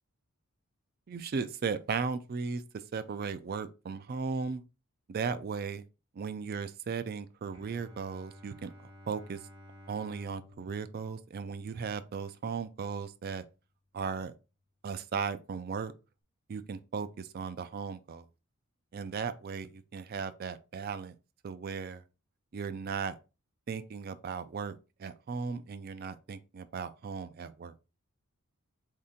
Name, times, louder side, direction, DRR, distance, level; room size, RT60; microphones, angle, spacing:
voice 1, 1.1-2.6 2.9-4.6 5.1-5.8 6.2-8.7 9.1-9.4 9.9-13.4 13.9-14.3 14.8-15.9 16.5-18.2 18.9-21.1 21.4-22.0 22.5-23.1 23.7-27.7, right 5 dB, 45° right, 0.3 m, -36 dB
Bowed string instrument, 7.5-13.2, left 1 dB, 25° right, 1.3 m, -55 dB
4.1 x 2.8 x 3.6 m
head